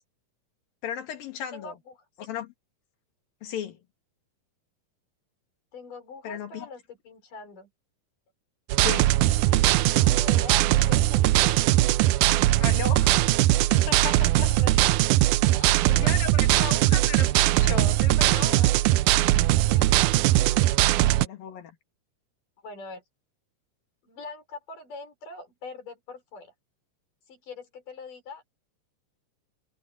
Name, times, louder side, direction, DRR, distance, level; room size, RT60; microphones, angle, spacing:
voice 1, 0.8-1.8 2.2-2.5 3.4-3.8 6.2-6.7 8.8-9.2 12.6-14.5 15.9-18.6 21.0-21.8, left 8 dB, 90° left, 3.9 m, -35 dB
voice 2, 1.5-1.9 5.7-7.7 9.4-11.6 14.5-15.0 15.4-16.1 18.4-18.8 19.6-20.3 20.7-20.9 22.6-23.0 24.0-26.5 27.3-28.4, left 4 dB, 70° left, 6.8 m, -43 dB
sound 1, 8.7-21.3, right 16 dB, 80° right, 2.0 m, -20 dB
omnidirectional pair, 4.0 m